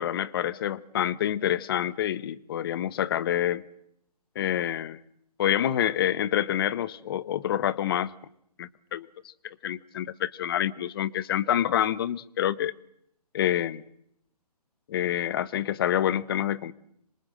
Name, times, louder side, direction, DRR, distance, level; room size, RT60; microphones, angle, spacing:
voice 1, 0.0-3.6 4.3-5.0 5.4-8.1 8.6-9.1 9.6-12.7 13.3-13.8 14.9-16.7, left 11 dB, 35° left, 1.0 m, -27 dB
26.5 x 23.5 x 7.7 m
hypercardioid pair, 155°, 21 cm